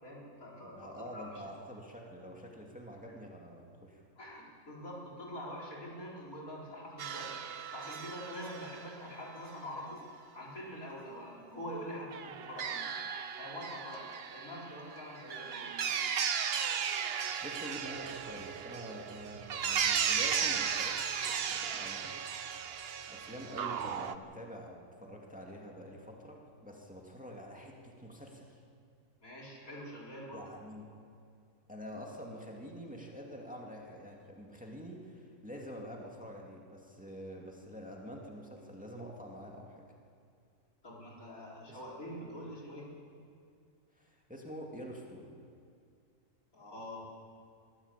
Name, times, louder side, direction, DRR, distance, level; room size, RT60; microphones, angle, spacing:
voice 1, 0.0-1.3 4.2-7.4 7.7-10.0 10.3-12.9 13.4-16.0 29.2-30.4 40.8-42.9 46.5-47.1, equal, 75° left, -4 dB, 4.8 m, -45 dB
voice 2, 0.6-4.0 17.0-22.7 23.1-28.6 30.3-30.9 31.7-39.9 41.7-41.8 43.9-45.3, equal, 5° right, -1 dB, 2.4 m, -47 dB
sound 1, 7.0-9.0 12.1-24.2, right 7 dB, 50° right, 0.9 m, -35 dB
23.5 x 14.5 x 8.4 m, 2.3 s
omnidirectional pair, 1.5 m